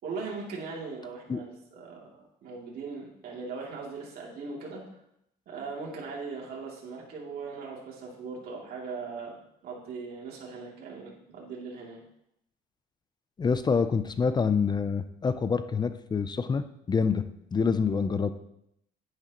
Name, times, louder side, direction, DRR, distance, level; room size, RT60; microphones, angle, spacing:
voice 1, 0.0-4.8 5.5-9.3 9.6-12.0, right 4 dB, 65° right, -3 dB, 2.8 m, -39 dB
voice 2, 13.4-18.3, left 5 dB, 25° left, 11 dB, 0.5 m, -27 dB
10.0 x 9.6 x 3.0 m, 0.77 s
cardioid pair, 110°, 17 cm